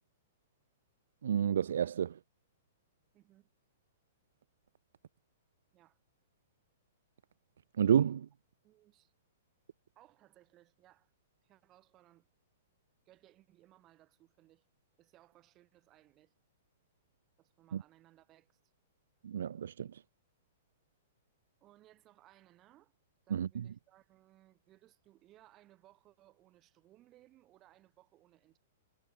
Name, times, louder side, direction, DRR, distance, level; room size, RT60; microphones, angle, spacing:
voice 1, 1.2-2.2 7.8-8.3 19.2-19.9 23.3-23.7, right 8 dB, 65° right, 0.3 m, -30 dB
voice 2, 3.1-3.5 5.7-6.0 8.6-9.1 9.9-11.1 11.4-12.3 13.1-14.6 15.0-16.3 17.4-18.6 21.6-22.9 23.2-28.6, right 15 dB, 30° right, 4.7 m, -64 dB
figure-of-eight pair, 105°, 0 cm